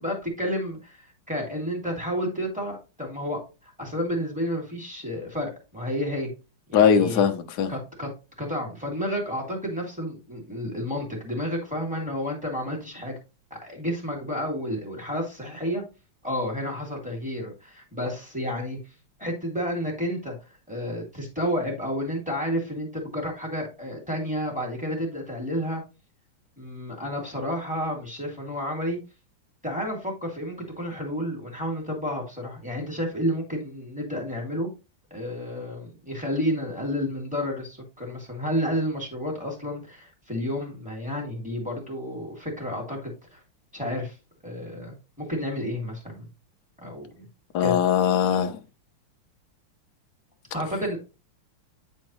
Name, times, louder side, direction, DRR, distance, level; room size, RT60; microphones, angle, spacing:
voice 1, 0.0-6.3 6.7-7.2 7.7-8.1 8.4-13.2 13.5-15.8 16.2-18.8 19.2-20.4 20.7-25.8 26.6-29.0 29.6-34.7 35.1-43.4 43.7-44.2 44.4-46.3 46.8-47.3 47.6-47.7 50.5-51.0, equal, 5° right, 2.5 m, -31 dB
voice 2, 6.7-7.7 47.5-48.6, left 8 dB, 55° left, 1.3 m, -20 dB
9.7 x 4.5 x 3.1 m
omnidirectional pair, 2.4 m